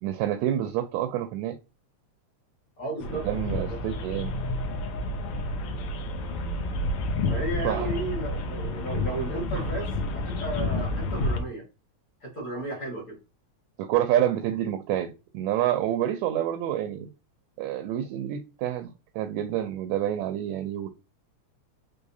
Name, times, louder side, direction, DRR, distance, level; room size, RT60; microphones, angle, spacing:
voice 1, 0.0-1.6 3.1-4.3 7.6-8.0 9.6-9.7 13.8-17.1 17.6-20.9, right 11 dB, 80° right, 1.8 m, -28 dB
voice 2, 2.8-3.2 3.6-3.8 7.3-9.9 10.4-11.6 12.2-13.2, right 2 dB, 35° left, 1.9 m, -34 dB
sound 1, 3.0-11.4, left 2 dB, 75° left, 1.3 m, -30 dB
4.7 x 3.5 x 2.6 m
omnidirectional pair, 3.4 m